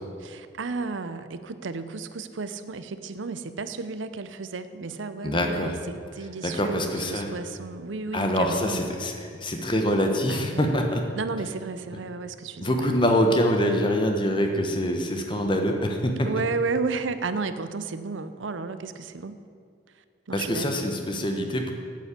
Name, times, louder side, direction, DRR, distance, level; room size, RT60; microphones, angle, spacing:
voice 1, 0.2-8.9 10.3-10.9 11.1-12.9 16.2-19.4 19.9-20.9, right 4 dB, 75° right, 11 dB, 0.6 m, -33 dB
voice 2, 5.2-5.7 6.4-7.3 8.1-9.1 9.4-11.0 12.6-16.3 20.3-21.7, equal, 25° left, 4 dB, 1.2 m, -24 dB
8.8 x 8.4 x 8.4 m, 2.3 s
head